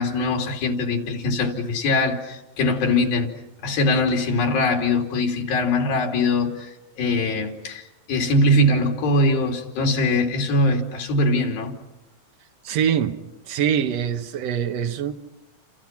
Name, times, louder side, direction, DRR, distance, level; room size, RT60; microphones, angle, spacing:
voice 1, 0.0-3.3 3.6-11.7, left 2 dB, 85° left, 4.9 m, -22 dB
voice 2, 12.6-13.2 13.5-15.1, right 8 dB, 55° right, 2.1 m, -23 dB
29.5 x 28.5 x 6.0 m
omnidirectional pair, 4.1 m